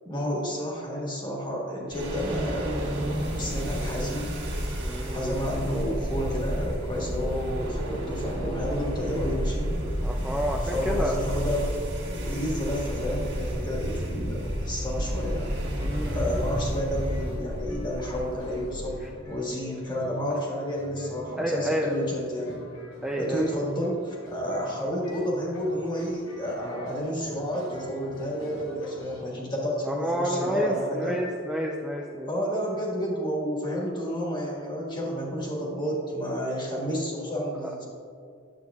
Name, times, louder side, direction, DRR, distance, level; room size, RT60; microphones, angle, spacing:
voice 1, 0.0-2.7 3.4-4.3 5.1-9.7 10.6-11.7 12.0-15.5 16.1-19.0 19.2-22.6 23.2-31.2 32.2-37.8, equal, 25° left, -3 dB, 1.5 m, -30 dB
sound 1, 1.9-19.3, equal, 55° right, 1.9 m, -31 dB
voice 2, 4.8-5.6 10.0-11.2 15.8-16.4 21.4-22.0 23.0-23.4 29.8-32.3 37.6-37.8, equal, 5° right, -1 dB, 0.4 m, -30 dB
sound 2, 15.0-29.2, left 1 dB, 75° left, 1.3 m, -49 dB
10.5 x 7.8 x 2.3 m, 2.3 s
head